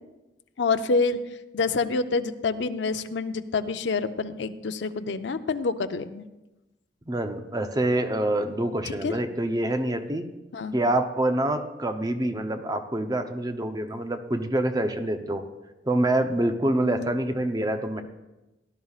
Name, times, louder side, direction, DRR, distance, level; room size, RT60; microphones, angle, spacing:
voice 1, 0.6-1.2 1.5-6.2 8.9-9.1 10.5-10.7 16.8-17.1, left 4 dB, 80° left, 10 dB, 0.6 m, -27 dB
voice 2, 7.1-10.3 10.7-15.4 15.8-18.0, right 1 dB, 20° right, 6 dB, 0.7 m, -26 dB
18.0 x 11.5 x 2.4 m, 1.0 s
head